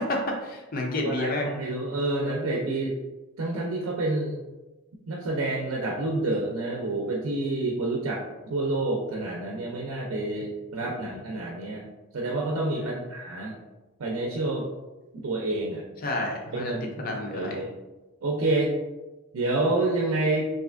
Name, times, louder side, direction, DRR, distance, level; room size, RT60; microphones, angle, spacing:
voice 1, 0.0-1.5 12.7-13.1 16.0-16.7 17.0-17.6, left 2 dB, 40° left, 1 dB, 0.5 m, -30 dB
voice 2, 1.0-3.0 3.4-4.4 5.1-8.2 8.5-11.8 12.1-13.5 14.0-14.7 15.2-15.8 16.5-17.7 18.2-18.7 19.3-20.5, right 2 dB, 85° right, -1 dB, 0.4 m, -28 dB
3.1 x 2.6 x 2.4 m, 1.1 s
head